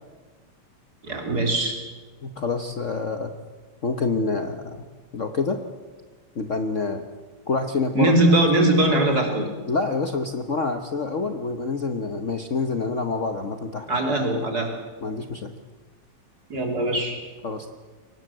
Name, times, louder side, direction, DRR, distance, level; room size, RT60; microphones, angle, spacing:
voice 1, 1.0-1.8 7.9-9.5 13.9-14.7 16.5-17.2, right 1 dB, 50° right, 3 dB, 4.0 m, -21 dB
voice 2, 2.2-3.3 3.8-4.8 5.1-5.6 6.3-7.1 7.5-8.1 9.7-13.9 15.0-15.5 17.4-17.7, left 4 dB, 45° left, 6 dB, 1.2 m, -27 dB
23.5 x 19.5 x 7.7 m, 1.3 s
omnidirectional pair, 2.3 m